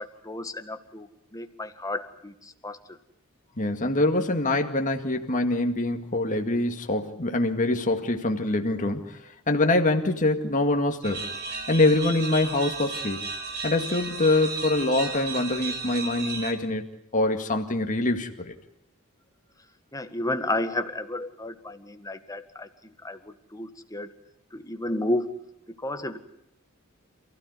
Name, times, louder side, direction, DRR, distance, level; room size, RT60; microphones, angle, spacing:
voice 1, 0.0-2.8 19.9-24.1 24.5-25.4 25.8-26.2, left 1 dB, 15° left, 8 dB, 1.7 m, -32 dB
voice 2, 3.6-9.2 9.5-11.3 11.7-13.3 13.6-16.9 17.1-18.5, left 2 dB, 35° left, 4 dB, 2.1 m, -24 dB
sound 1, 11.0-16.5, right 4 dB, 50° right, 4.3 m, -34 dB
28.0 x 16.0 x 9.6 m, 0.83 s
head